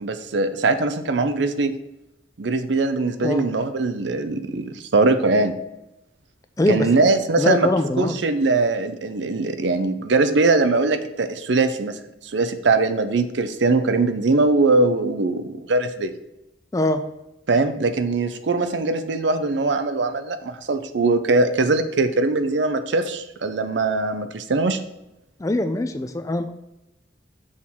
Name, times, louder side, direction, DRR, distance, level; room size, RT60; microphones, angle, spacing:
voice 1, 0.0-1.7 2.4-5.5 6.7-7.7 8.0-12.0 12.2-16.1 17.5-24.8, right 3 dB, 70° right, 9 dB, 0.6 m, -21 dB
voice 2, 6.6-7.0 7.4-8.1 16.7-17.0 25.4-26.5, left 2 dB, 15° left, 8 dB, 0.4 m, -22 dB
6.3 x 3.7 x 5.9 m, 0.88 s
head